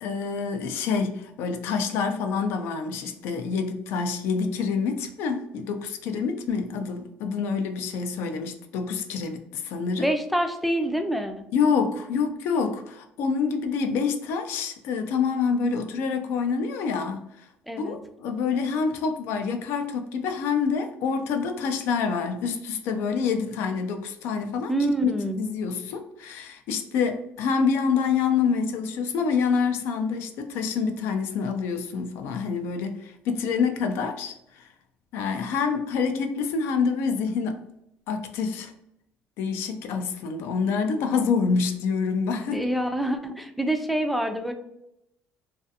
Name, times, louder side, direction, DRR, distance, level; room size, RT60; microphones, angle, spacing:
voice 1, 0.0-10.1 11.5-17.2 17.8-24.7 25.0-25.1 25.4-34.7 35.1-37.6 38.1-38.7 39.4-42.6, left 5 dB, 75° left, 0.4 m, -27 dB
voice 2, 10.0-11.4 17.7-18.0 24.7-25.4 42.5-44.5, right 1 dB, ahead, 0.3 m, -26 dB
2.4 x 2.4 x 2.6 m
cardioid pair, 120°, 4 cm